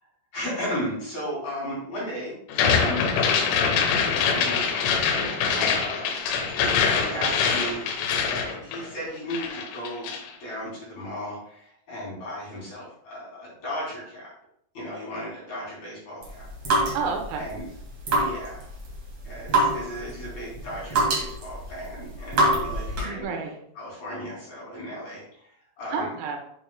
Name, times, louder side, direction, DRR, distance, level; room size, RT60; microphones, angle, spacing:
voice 1, 0.3-2.3 2.7-3.1 4.0-6.1 6.9-7.8 8.3-10.1 10.4-14.3 14.7-16.5 17.3-17.6 18.2-18.7 19.2-23.3 23.7-26.1, equal, 40° left, -6 dB, 3.4 m, -35 dB
sound 1, 2.5-9.1 9.3-10.3, left 6 dB, 80° left, 3.7 m, -24 dB
voice 2, 5.4-5.7 16.9-17.4 23.0-23.6 25.9-26.4, right 5 dB, 90° right, 3 dB, 3.8 m, -31 dB
sound 2, 16.2-23.2, right 1 dB, 65° right, 1.3 m, -27 dB
9.3 x 6.9 x 2.2 m, 0.71 s
omnidirectional pair, 5.9 m